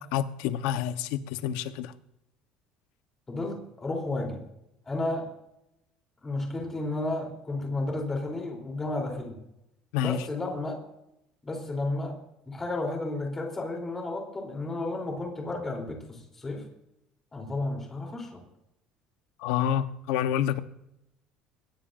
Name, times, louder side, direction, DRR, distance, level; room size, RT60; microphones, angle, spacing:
voice 1, 0.0-1.9 9.9-10.2 19.4-20.6, left 10 dB, 85° left, 1.0 m, -28 dB
voice 2, 3.3-4.4 4.9-5.3 6.2-9.4 10.0-10.7 11.4-12.2 12.5-16.7 17.3-18.4, left 2 dB, 15° left, 3.4 m, -32 dB
21.5 x 17.5 x 2.6 m
cardioid pair, 175°, 2 cm